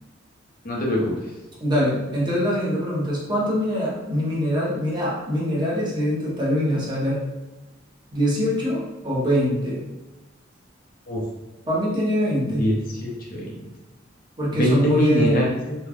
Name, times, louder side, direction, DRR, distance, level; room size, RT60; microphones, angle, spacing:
voice 1, 0.6-1.1 11.1-11.2 12.6-12.8 13.0-13.5 14.5-15.8, equal, 45° left, -2 dB, 0.6 m, -22 dB
voice 2, 1.6-7.2 8.1-9.8 11.7-12.7 14.4-15.5, equal, 25° right, -6 dB, 0.8 m, -23 dB
3.1 x 2.2 x 2.4 m, 1.1 s
head